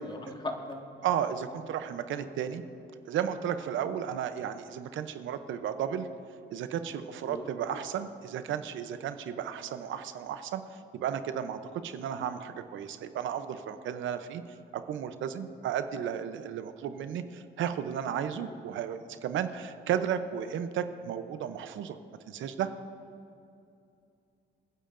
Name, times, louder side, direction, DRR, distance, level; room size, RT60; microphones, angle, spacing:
voice 1, 0.0-0.8 2.1-2.3 7.2-7.5 16.8-16.9 18.4-18.6, left 2 dB, 25° left, 1 dB, 1.8 m, -39 dB
voice 2, 1.0-2.6 3.0-6.1 6.5-10.6 10.9-14.4 14.7-22.0 22.3-22.7, right 9 dB, 80° right, 10 dB, 0.7 m, -33 dB
27.0 x 10.0 x 2.6 m, 2.5 s
cardioid pair, 90°, 20 cm